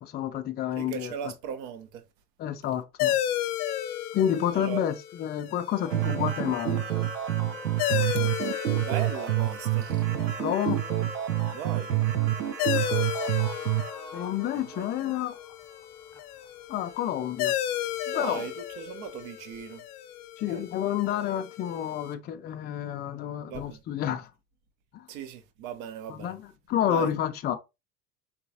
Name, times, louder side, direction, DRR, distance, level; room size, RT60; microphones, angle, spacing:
voice 1, 0.0-1.3 2.4-3.2 4.1-6.9 10.4-10.8 14.1-15.4 16.7-17.5 18.1-18.5 20.4-24.3 24.9-25.1 26.1-27.6, left 10 dB, 20° left, 0.4 m, -29 dB
voice 2, 0.8-2.0 4.5-4.8 8.2-8.3 8.8-10.0 11.5-11.9 14.5-15.2 18.1-19.8 20.5-20.6 23.5-23.8 25.1-26.3 26.9-27.1, right 8 dB, 55° right, 0.9 m, -38 dB
sound 1, 3.0-22.1, left 12 dB, 65° left, 0.6 m, -34 dB
sound 2, 5.8-19.3, left 2 dB, 5° left, 0.8 m, -46 dB
sound 3, 5.9-13.9, right 14 dB, 85° right, 0.6 m, -28 dB
4.0 x 3.8 x 2.8 m
figure-of-eight pair, 75°, 49 cm